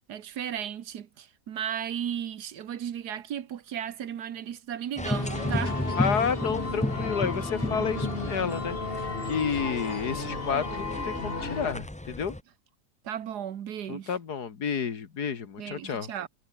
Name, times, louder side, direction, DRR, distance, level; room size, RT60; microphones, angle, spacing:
voice 1, 0.1-5.8 13.0-14.1 15.6-16.3, right 9 dB, 75° right, 1.7 m, -35 dB
sound 1, 5.0-11.7, left 3 dB, 35° left, 2.5 m, -35 dB
sound 2, 5.0-12.4, left 1 dB, 10° left, 0.3 m, -33 dB
voice 2, 6.0-9.0 9.2-12.4 13.9-16.1, left 6 dB, 75° left, 2.3 m, -30 dB
omnidirectional pair, 1.7 m